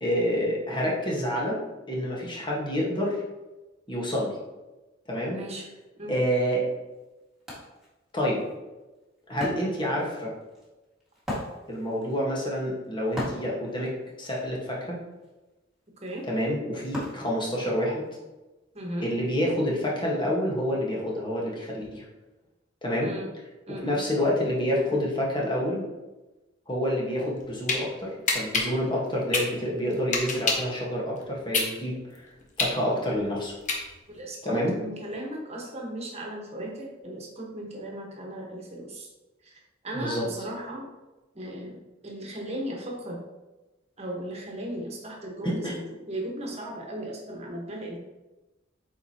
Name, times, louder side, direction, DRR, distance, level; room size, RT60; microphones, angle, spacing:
voice 1, 0.0-1.6 1.9-3.2 3.9-4.4 5.1-5.4 6.1-6.6 8.1-8.4 9.3-10.3 11.7-13.9 14.2-15.0 16.3-18.0 19.0-22.0 22.8-23.1 23.7-25.8 26.7-32.2 32.6-33.5 34.4-34.7 39.9-40.2 45.4-45.7, equal, 25° left, -4 dB, 1.5 m, -28 dB
voice 2, 5.3-5.7 5.9-6.2 16.0-16.3 18.7-19.1 23.0-23.3 23.7-24.0 34.1-39.1 39.4-39.6 39.8-40.9 41.3-43.2 44.0-48.0, right 1 dB, 35° right, -1 dB, 1.4 m, -36 dB
Wood, 6.5-6.6 6.9-18.1, left 1 dB, ahead, 1.9 m, -40 dB
sound 1, 27.2-27.8 28.3-30.7 31.2-34.2, left 4 dB, 40° left, 1.0 m, -27 dB
7.8 x 4.4 x 2.9 m, 1.1 s
head